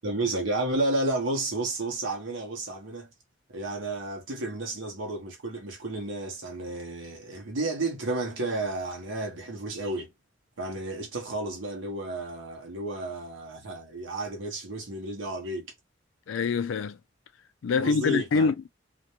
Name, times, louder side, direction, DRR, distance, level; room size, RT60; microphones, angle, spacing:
voice 1, 0.0-3.1 3.5-10.1 10.6-15.7 17.8-18.5, right 2 dB, 85° right, 0.8 m, -32 dB
voice 2, 16.3-17.0 17.6-18.7, left 5 dB, 80° left, 0.4 m, -25 dB
2.4 x 2.2 x 2.8 m
head